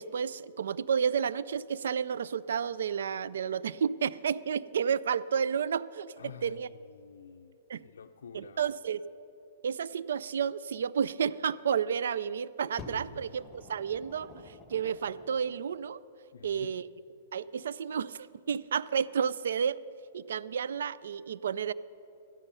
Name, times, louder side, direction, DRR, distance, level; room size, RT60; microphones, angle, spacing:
voice 1, 0.0-6.1 6.4-6.7 7.7-7.8 8.3-9.0 9.6-16.0 16.4-16.9 17.3-19.8 20.1-21.7, right 7 dB, 80° right, 17 dB, 0.3 m, -31 dB
voice 2, 6.2-7.6 7.8-8.7 13.0-13.3 16.3-16.8, left 7 dB, 85° left, 7 dB, 0.4 m, -49 dB
Fire, 12.8-15.6 16.4-16.5, left 3 dB, 15° left, 1.6 m, -48 dB
13.0 x 10.0 x 5.5 m, 2.7 s
hypercardioid pair, 135°, 0 cm